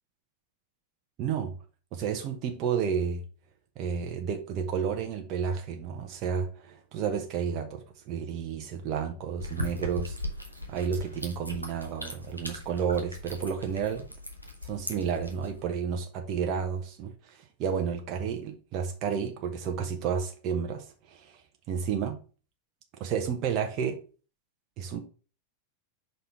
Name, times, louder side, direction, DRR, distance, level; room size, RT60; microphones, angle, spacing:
voice 1, 1.2-1.6 1.9-3.2 3.8-10.2 10.7-14.1 14.6-21.3 21.7-22.2 23.0-24.0 24.8-25.0, right 7 dB, 40° right, 1.0 m, -31 dB
sound 1, 9.4-15.6, left 1 dB, 90° left, 1.1 m, -39 dB
5.4 x 4.1 x 4.5 m
figure-of-eight pair, 90°, 0 cm